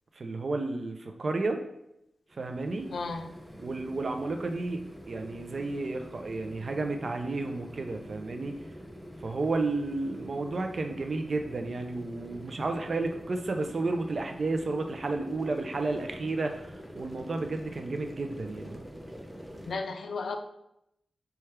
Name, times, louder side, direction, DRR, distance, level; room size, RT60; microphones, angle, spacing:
voice 1, 0.2-1.6 2.4-2.9 3.6-4.8 5.1-8.6 9.2-18.8, right 3 dB, 55° right, 5 dB, 0.4 m, -32 dB
sound 1, 2.3-19.8, equal, 5° right, 0.5 m, -46 dB
voice 2, 2.9-3.3 19.7-20.4, left 4 dB, 80° left, 7 dB, 0.3 m, -34 dB
3.2 x 2.3 x 4.3 m, 0.82 s
wide cardioid pair, 90°, 0 cm